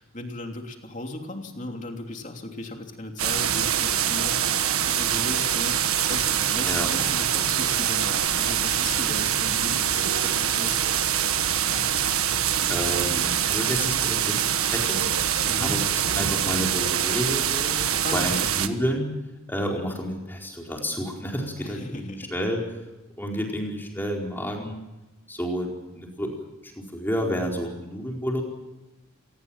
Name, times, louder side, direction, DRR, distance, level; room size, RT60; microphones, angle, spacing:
voice 1, 0.0-10.8 15.5-15.8 18.0-18.5 21.6-22.3, left 2 dB, 35° left, 3 dB, 3.2 m, -36 dB
sound 1, 3.2-18.7, right 9 dB, 85° right, 1.5 m, -24 dB
voice 2, 12.7-15.0 15.6-19.1 19.5-22.6 23.2-24.8 25.3-26.3 26.6-28.4, equal, 10° left, 0 dB, 4.6 m, -30 dB
26.5 x 19.5 x 7.5 m, 1.0 s
head